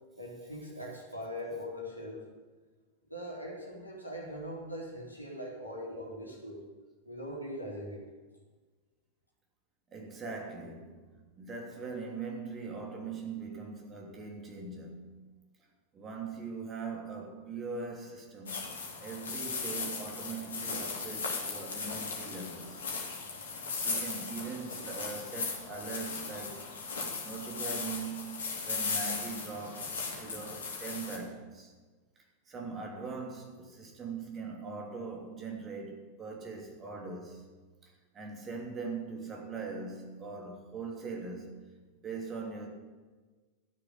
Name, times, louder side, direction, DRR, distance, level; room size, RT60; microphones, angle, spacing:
voice 1, 0.2-2.2 3.1-6.6 7.0-8.1, equal, 90° left, 3.0 m, -41 dB
voice 2, 9.9-11.1 11.4-15.2 15.9-18.6 19.0-22.9 23.8-26.7 27.2-31.7 32.5-37.4 38.1-41.6 42.0-42.7, right 4 dB, 25° right, 3.0 m, -41 dB
sound 1, 18.5-31.2, left 4 dB, 65° left, 2.6 m, -37 dB
13.0 x 6.9 x 9.0 m
figure-of-eight pair, 90°, 0 cm